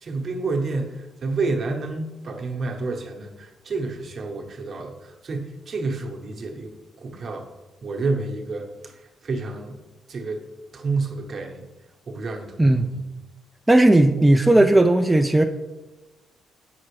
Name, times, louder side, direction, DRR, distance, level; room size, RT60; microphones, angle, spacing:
voice 1, 0.0-7.5 7.8-9.8 10.1-10.4 10.7-11.7 12.1-13.0, right 3 dB, 50° right, 2 dB, 0.9 m, -29 dB
voice 2, 12.6-12.9 13.7-15.4, right 1 dB, 10° right, 5 dB, 0.3 m, -16 dB
7.1 x 5.8 x 3.2 m, 1.1 s
cardioid pair, 90°, 0 cm